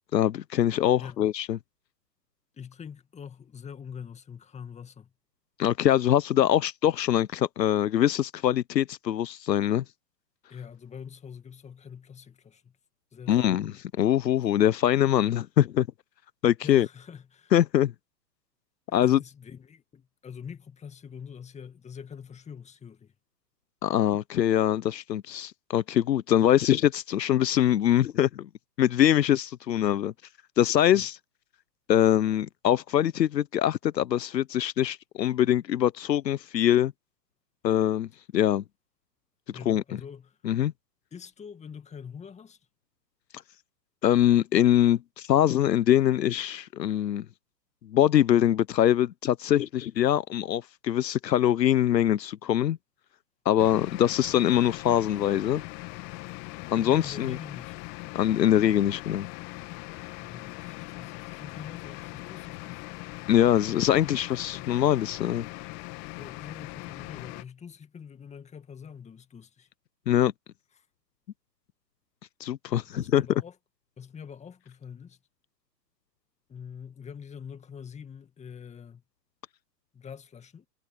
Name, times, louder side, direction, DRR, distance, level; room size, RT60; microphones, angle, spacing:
voice 1, 0.1-1.6 5.6-9.8 13.3-15.9 16.4-16.9 17.5-17.9 18.9-19.2 23.8-28.5 28.8-30.1 30.6-31.2 31.9-36.9 37.6-38.6 39.7-39.8 40.4-40.7 44.0-47.2 47.9-52.8 53.4-55.6 56.7-57.4 58.1-59.3 63.3-65.5 70.1-70.3 72.4-73.2, left 11 dB, 75° left, 1.1 m, -23 dB
voice 2, 1.0-1.3 2.5-5.1 10.5-12.8 13.1-13.8 16.6-17.5 19.0-23.1 30.9-31.1 39.5-40.4 41.1-42.6 56.7-57.8 60.2-62.9 63.9-64.2 64.5-64.7 66.2-69.7 70.8-70.9 72.8-73.6 74.0-75.2 76.5-79.0 79.9-80.7, left 7 dB, 15° left, 2.2 m, -44 dB
sound 1, 53.6-67.4, left 27 dB, 35° left, 2.4 m, -41 dB
hypercardioid pair, 120°, 50 cm